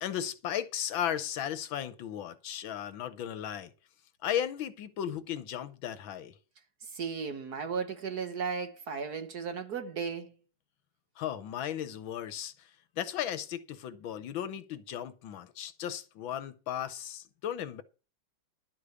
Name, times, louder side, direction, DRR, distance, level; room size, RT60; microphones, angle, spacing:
voice 1, 0.0-3.7 4.2-6.4 11.2-12.7 13.0-17.8, left 10 dB, 70° left, 1.5 m, -35 dB
voice 2, 6.9-10.3, right 6 dB, 55° right, 1.4 m, -35 dB
11.5 x 5.0 x 8.1 m
omnidirectional pair, 2.3 m